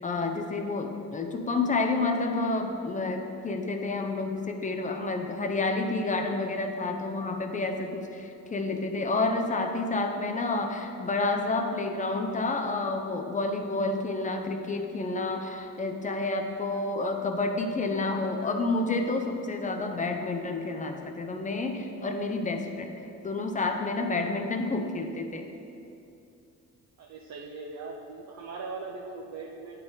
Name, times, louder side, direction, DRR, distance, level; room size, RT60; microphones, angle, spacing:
voice 1, 0.0-22.9 23.2-25.5, left 3 dB, 25° left, 4 dB, 0.6 m, -29 dB
voice 2, 27.0-29.8, right 4 dB, 60° right, -1 dB, 0.6 m, -40 dB
8.4 x 4.1 x 3.9 m, 2.7 s
cardioid pair, 90°, 30 cm